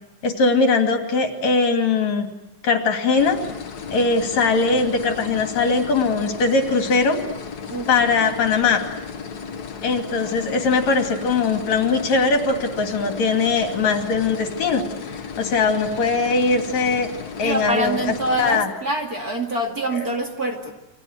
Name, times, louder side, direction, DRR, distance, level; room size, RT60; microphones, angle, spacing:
voice 1, 0.2-2.3 2.6-3.4 3.9-7.2 7.9-8.8 9.8-17.1 17.4-18.0 18.4-18.7 19.9-20.1, left 4 dB, 70° left, 5 dB, 4.0 m, -20 dB
sound 1, 3.1-18.6, left 6 dB, 40° left, 1.7 m, -35 dB
voice 2, 7.7-8.4 17.4-20.7, right 1 dB, 30° right, 2 dB, 2.7 m, -26 dB
29.5 x 24.5 x 8.1 m, 0.86 s
omnidirectional pair, 3.4 m